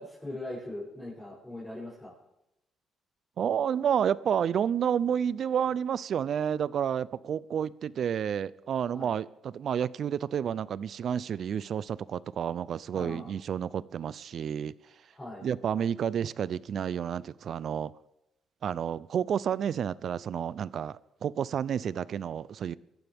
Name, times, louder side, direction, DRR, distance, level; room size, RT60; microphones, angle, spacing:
voice 1, 0.0-2.1 8.9-9.1 12.9-13.3 15.1-15.5, left 1 dB, 10° left, 8.0 m, -40 dB
voice 2, 3.4-14.7 15.4-17.9 18.6-22.8, right 8 dB, 60° right, 0.5 m, -30 dB
27.5 x 15.0 x 3.6 m
cardioid pair, 90°, 0 cm